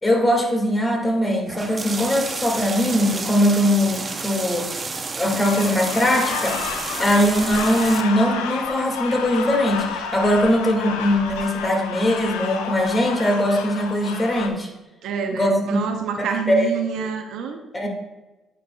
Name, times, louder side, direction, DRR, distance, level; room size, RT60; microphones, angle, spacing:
voice 1, 0.0-4.7 5.1-6.6 7.0-14.7 15.3-15.8 16.2-16.7 17.7-17.9, equal, 20° left, 1 dB, 1.9 m, -21 dB
sound 1, 1.5-8.0, right 4 dB, 35° right, 0.7 m, -30 dB
sound 2, 5.4-14.5, left 6 dB, 90° left, 0.5 m, -31 dB
voice 2, 15.0-17.6, right 6 dB, 75° right, 5 dB, 0.7 m, -27 dB
9.0 x 4.7 x 2.3 m, 1.1 s
supercardioid pair, 60°, 0 cm